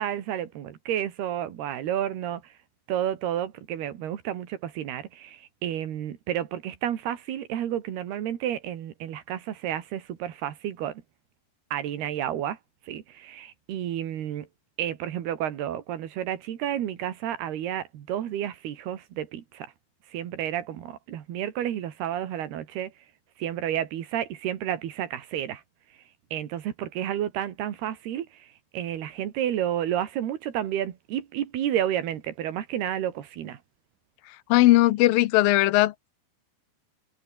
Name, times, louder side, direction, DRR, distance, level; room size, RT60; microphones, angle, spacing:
voice 1, 0.0-2.6 2.9-11.0 11.7-12.6 12.8-14.5 14.8-19.7 20.1-22.9 23.4-25.6 25.9-26.0 26.3-33.6, right 11 dB, 90° right, 4.1 m, -31 dB
voice 2, 34.5-36.1, left 17 dB, 75° left, 2.4 m, -19 dB
omnidirectional pair, 4.4 m